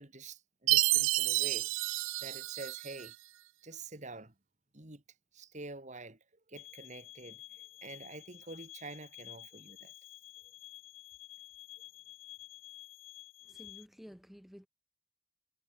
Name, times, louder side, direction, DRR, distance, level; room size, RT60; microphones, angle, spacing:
voice 1, 0.0-1.9 2.2-3.1 3.6-4.3 4.7-5.0 5.3-6.2 6.5-9.9, right 3 dB, 35° right, 2.5 m, -47 dB
Chime, 0.7-3.1, right 20 dB, 75° right, 0.3 m, -30 dB
sound 1, 6.6-13.9, left 16 dB, 85° left, 0.8 m, -51 dB
voice 2, 13.5-14.7, equal, ahead, 0.6 m, -52 dB
head